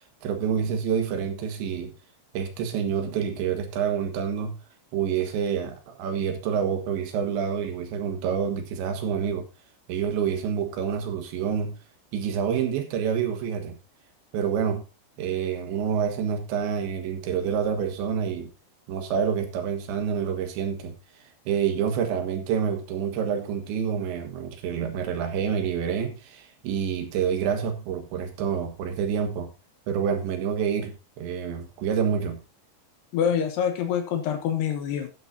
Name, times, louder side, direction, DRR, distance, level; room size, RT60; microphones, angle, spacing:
voice 1, 0.2-1.9 2.3-4.6 4.9-9.5 9.9-11.8 12.1-13.8 14.3-14.8 15.2-18.5 18.9-21.0 21.5-29.5 29.9-32.4, right 7 dB, 70° right, 3.7 m, -27 dB
voice 2, 33.1-35.1, left 8 dB, 70° left, 2.9 m, -26 dB
12.5 x 10.0 x 2.7 m
omnidirectional pair, 5.5 m